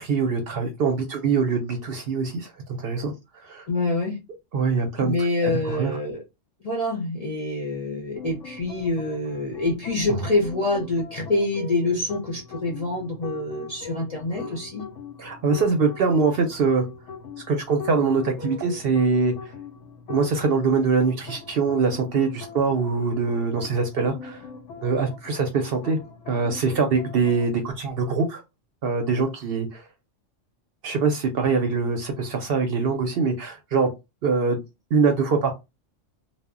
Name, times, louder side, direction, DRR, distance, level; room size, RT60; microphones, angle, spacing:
voice 1, 0.0-3.7 4.5-5.1 5.4-6.0 14.3-14.6 15.2-16.9 17.5-19.3 20.1-24.4 24.8-26.0 26.3-28.4 28.8-29.8 30.8-33.9 34.2-34.6 34.9-35.5, right 4 dB, 60° right, 0.7 m, -23 dB
voice 2, 3.7-4.2 5.0-6.2 6.6-14.9, left 2 dB, 45° left, 0.5 m, -26 dB
sound 1, 8.2-27.6, left 5 dB, 90° left, 1.0 m, -41 dB
2.1 x 2.0 x 3.5 m
omnidirectional pair, 1.3 m